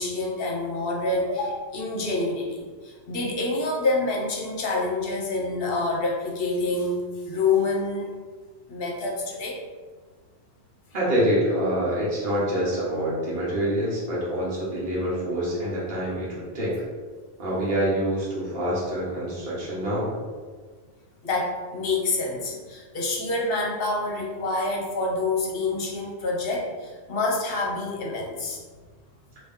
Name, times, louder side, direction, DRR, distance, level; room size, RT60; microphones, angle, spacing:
voice 1, 0.0-8.1 8.7-9.6 21.2-28.6, left 3 dB, 65° left, -2 dB, 0.8 m, -27 dB
voice 2, 10.9-16.7 17.4-20.1, equal, 55° right, -8 dB, 1.2 m, -26 dB
2.9 x 2.6 x 3.5 m, 1.5 s
omnidirectional pair, 1.1 m